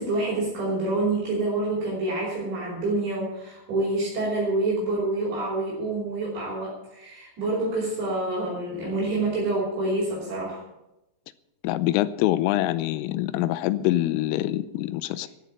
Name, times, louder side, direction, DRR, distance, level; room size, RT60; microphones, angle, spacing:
voice 1, 0.0-10.6, right 2 dB, 60° right, -6 dB, 7.1 m, -27 dB
voice 2, 11.6-15.3, left 15 dB, 90° left, 15 dB, 3.3 m, -25 dB
14.5 x 9.2 x 8.9 m, 0.92 s
omnidirectional pair, 5.8 m